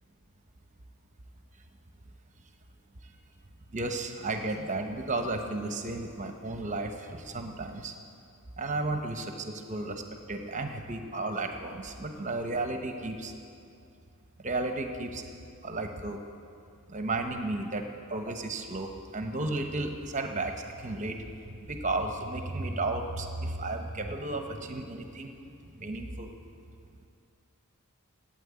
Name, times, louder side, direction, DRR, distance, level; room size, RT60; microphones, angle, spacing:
voice 1, 3.7-7.9 8.6-10.0 10.3-13.3 14.4-15.2 15.6-16.2 16.9-17.8 18.1-25.4 25.8-26.3, right 2 dB, 35° right, 5 dB, 0.9 m, -33 dB
12.0 x 8.9 x 8.6 m, 2.5 s
head